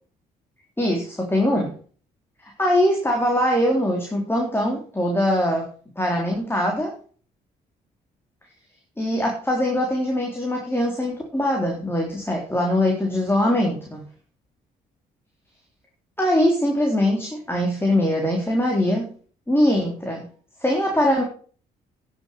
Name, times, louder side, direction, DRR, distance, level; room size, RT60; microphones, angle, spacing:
voice 1, 0.8-1.7 2.6-5.7 6.0-6.9 9.0-14.1 16.2-19.1 19.5-20.2 20.6-21.2, left 1 dB, 10° left, 0 dB, 3.7 m, -22 dB
10.5 x 7.4 x 6.9 m, 0.43 s
supercardioid pair, 60°, 19 cm